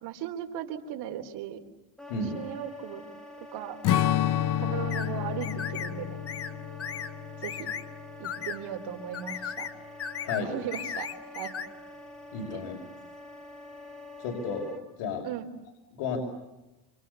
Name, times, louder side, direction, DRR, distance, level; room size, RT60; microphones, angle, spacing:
voice 1, 0.0-1.7 2.2-3.0 3.5-3.8 4.6-6.2 7.4-7.7 8.2-9.7 10.4-11.5 12.5-12.6 15.2-15.5, right 10 dB, 70° right, 4 dB, 3.8 m, -37 dB
Wind instrument woodwind instrument, 2.0-14.8, left 1 dB, ahead, 3.3 m, -46 dB
Strum, 3.8-8.5, left 11 dB, 50° left, 0.9 m, -30 dB
sound 1, 3.9-4.1 4.9-5.1 5.4-5.9 6.3-6.5 6.8-7.1 7.4-7.8 8.2-8.6 9.1-9.7 10.0-10.4 10.7-11.7, left 7 dB, 35° left, 1.6 m, -36 dB
voice 2, 12.3-12.7 14.2-14.6 15.0-15.2 16.0-16.2, left 4 dB, 85° left, 1 dB, 6.4 m, -32 dB
29.0 x 27.5 x 7.0 m, 1.0 s
cardioid pair, 155°, 41 cm